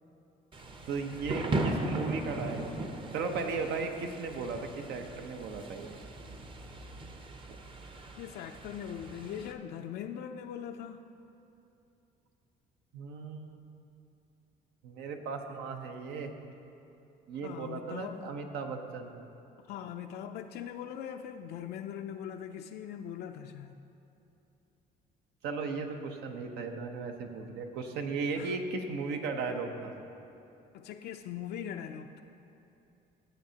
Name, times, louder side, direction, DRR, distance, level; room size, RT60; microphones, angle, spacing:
Thunder / Rain, 0.5-9.5, right 2 dB, 30° right, 0.7 m, -38 dB
voice 1, 0.8-6.0 7.5-7.6 12.9-13.6 14.8-16.3 17.3-19.3 25.4-29.9, right 4 dB, 80° right, 4 dB, 0.9 m, -36 dB
voice 2, 8.1-11.0 17.4-18.3 19.6-23.8 28.4-28.6 30.7-32.2, left 9 dB, 70° left, 5 dB, 0.4 m, -41 dB
15.5 x 7.9 x 2.8 m, 2.8 s
cardioid pair, 110°, 17 cm